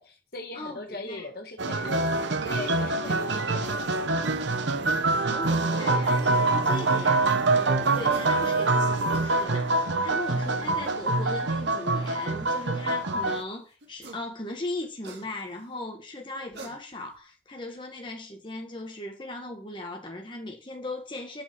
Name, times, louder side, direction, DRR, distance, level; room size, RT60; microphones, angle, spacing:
voice 1, 0.0-4.3, left 2 dB, 55° left, 1.6 m, -39 dB
voice 2, 0.5-1.3 5.2-21.4, left 2 dB, 25° left, 1.6 m, -38 dB
sound 1, 1.6-13.4, right 2 dB, 85° right, 0.9 m, -25 dB
sound 2, 8.1-8.3 8.9-9.3 10.8-10.9 13.8-14.3 14.6-15.6 16.4-17.2, right 3 dB, 70° right, 1.8 m, -45 dB
6.6 x 5.7 x 6.1 m
head